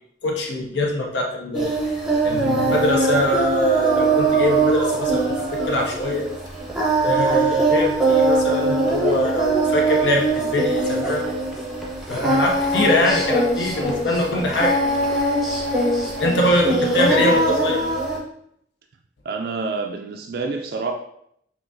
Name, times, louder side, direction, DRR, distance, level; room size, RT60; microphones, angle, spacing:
voice 1, 0.2-6.3 7.0-11.3 12.1-14.8 16.2-17.8, left 1 dB, 70° left, 1 dB, 0.6 m, -23 dB
Singing, 1.5-18.2, right 2 dB, ahead, 0.7 m, -22 dB
sound 1, 2.8-5.8 9.1-9.2 11.2-11.3 17.6-17.7, right 1 dB, 35° left, 1.4 m, -34 dB
voice 2, 16.9-17.2 19.2-20.9, right 4 dB, 55° right, 3 dB, 0.3 m, -28 dB
5.6 x 2.4 x 2.6 m, 0.72 s
head